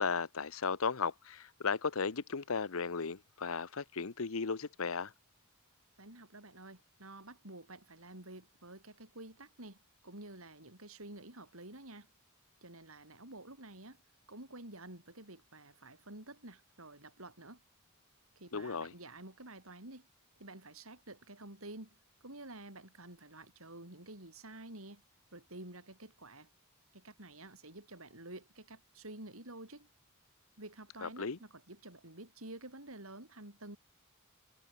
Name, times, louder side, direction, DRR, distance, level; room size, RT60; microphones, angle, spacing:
voice 1, 0.0-5.1 18.5-18.9 31.0-31.4, left 5 dB, 70° left, 0.9 m, -35 dB
voice 2, 6.0-9.8 10.0-12.1 12.6-14.0 14.3-17.6 18.4-20.1 20.4-21.9 22.2-25.0 25.3-26.5 26.9-29.9 30.6-33.8, right 2 dB, 70° right, 6.9 m, -50 dB
head